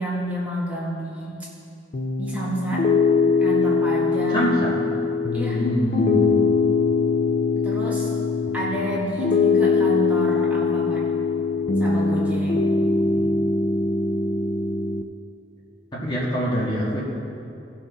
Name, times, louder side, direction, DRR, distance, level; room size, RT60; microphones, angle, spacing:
voice 1, 0.0-1.3 2.2-2.9 3.4-4.5 5.3-5.6 7.5-8.1 8.5-11.0 11.8-12.6, right 1 dB, 10° right, -6 dB, 1.6 m, -29 dB
Piano, 1.9-15.0, left 4 dB, 45° left, 0.5 m, -22 dB
voice 2, 4.3-4.7 5.5-6.5 13.1-13.3 15.9-17.0, equal, 25° left, -5 dB, 1.6 m, -24 dB
17.5 x 6.0 x 4.0 m, 2.7 s
head